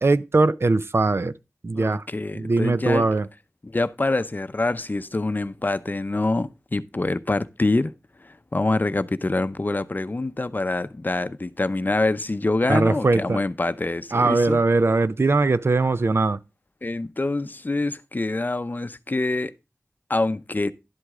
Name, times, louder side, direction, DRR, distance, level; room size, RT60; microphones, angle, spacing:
voice 1, 0.0-1.3 1.6-2.0 2.3-3.3 12.7-13.4 14.1-16.4, right 3 dB, 60° right, 0.6 m, -20 dB
voice 2, 1.7-3.2 3.6-7.9 8.2-14.6 16.8-19.5 20.1-20.7, left 2 dB, 40° left, 0.6 m, -25 dB
11.5 x 8.0 x 3.6 m
wide cardioid pair, 60°, 5 cm